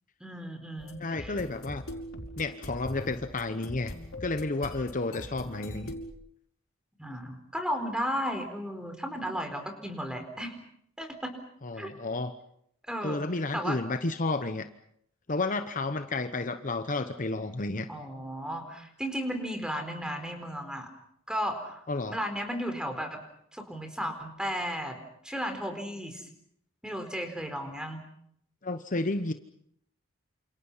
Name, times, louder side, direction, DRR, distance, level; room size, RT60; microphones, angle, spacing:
voice 1, 0.2-1.4 7.0-10.5 11.0-11.3 11.8-11.9 12.9-13.2 13.5-13.8 17.9-20.9 21.3-21.8 22.1-23.2 23.5-25.0 25.2-26.3 26.8-28.0, equal, 5° right, 6 dB, 4.4 m, -34 dB
sound 1, 0.8-6.1, left 1 dB, 85° left, 5.6 m, -42 dB
voice 2, 1.0-1.8 2.4-3.9 4.2-5.9 11.6-12.3 13.0-14.7 15.3-17.9 21.9-22.2 28.6-29.3, left 2 dB, 40° left, 9 dB, 1.0 m, -31 dB
28.5 x 28.0 x 5.7 m, 0.71 s
head